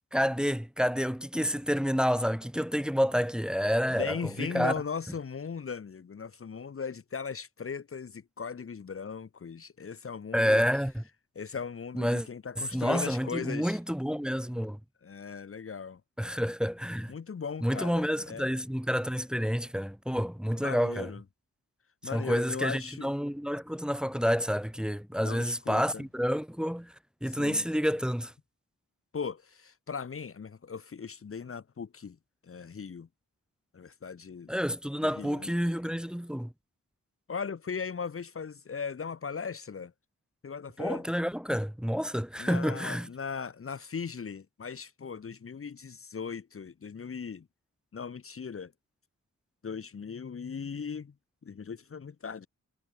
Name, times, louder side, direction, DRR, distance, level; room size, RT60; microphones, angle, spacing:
voice 1, 0.1-4.7 10.3-11.0 12.0-12.3 12.7-14.8 16.2-17.1 17.6-21.1 22.1-26.9 27.2-28.3 34.5-36.5 40.8-43.1, equal, 5° right, 1.7 m, -29 dB
voice 2, 3.9-10.6 11.3-13.8 15.0-16.0 17.1-18.5 20.6-21.2 22.0-23.1 25.2-26.0 27.3-27.6 29.1-32.2 32.4-33.1 33.7-34.5 35.0-35.5 37.3-39.9 40.4-41.0 42.4-47.5 47.9-48.7 49.6-51.1 51.4-52.5, left 6 dB, 45° left, 1.4 m, -38 dB
wide cardioid pair, 165°, 31 cm